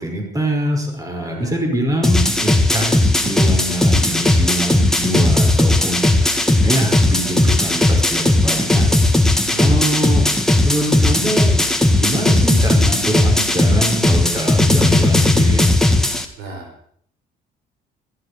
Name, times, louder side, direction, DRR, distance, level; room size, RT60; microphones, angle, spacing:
voice 1, 0.0-8.9 9.6-10.2 10.6-11.6 11.9-15.8, right 1 dB, 20° right, 3 dB, 5.3 m, -24 dB
voice 2, 1.0-1.6 9.4-9.8 16.4-16.7, right 3 dB, 85° right, 4 dB, 4.7 m, -34 dB
sound 1, 2.0-16.3, left 1 dB, 5° left, 2.0 m, -16 dB
15.0 x 13.5 x 6.8 m, 0.63 s
cardioid pair, 110°, 17 cm